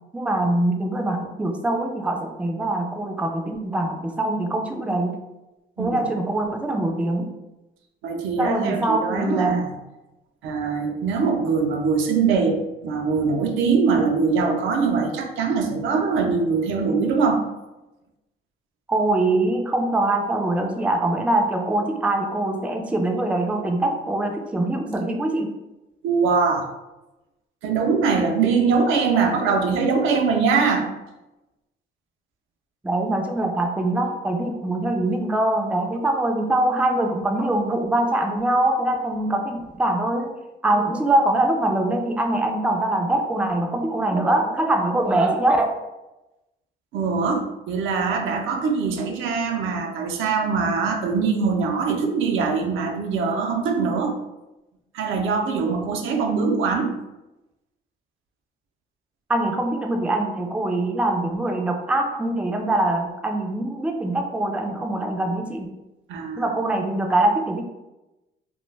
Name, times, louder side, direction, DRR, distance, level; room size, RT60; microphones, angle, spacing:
voice 1, 0.1-5.2 5.8-7.3 8.4-9.6 18.9-25.5 32.8-40.3 40.6-45.7 59.3-65.7 66.4-67.6, right 2 dB, 5° right, 3 dB, 0.3 m, -23 dB
voice 2, 8.0-9.6 10.4-17.4 26.0-26.7 27.6-30.9 46.9-54.2 54.9-56.9 66.1-66.5, right 5 dB, 85° right, 3 dB, 0.5 m, -22 dB
2.2 x 2.2 x 3.1 m, 0.99 s
cardioid pair, 90°, 20 cm